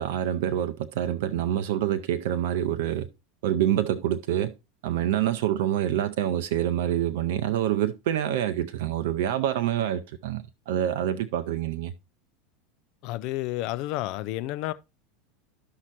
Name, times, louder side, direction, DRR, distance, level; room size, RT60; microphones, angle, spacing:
voice 1, 0.0-3.1 3.4-4.5 4.8-11.9, right 11 dB, 65° right, 0.5 m, -26 dB
voice 2, 13.0-14.7, left 16 dB, 55° left, 0.4 m, -30 dB
11.5 x 5.7 x 2.9 m
figure-of-eight pair, 80°, 0 cm